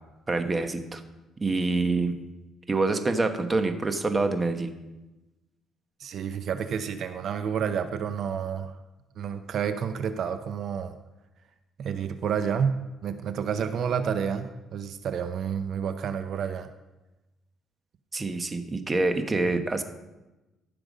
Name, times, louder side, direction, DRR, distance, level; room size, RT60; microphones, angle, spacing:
voice 1, 0.3-1.0 1.4-2.2 2.7-4.7 18.1-19.8, right 3 dB, 20° right, 7 dB, 1.1 m, -26 dB
voice 2, 6.0-8.8 9.2-10.9 11.8-16.7, right 7 dB, 55° right, 9 dB, 0.7 m, -30 dB
13.5 x 6.9 x 5.1 m, 1.0 s
cardioid pair, 130°, 0 cm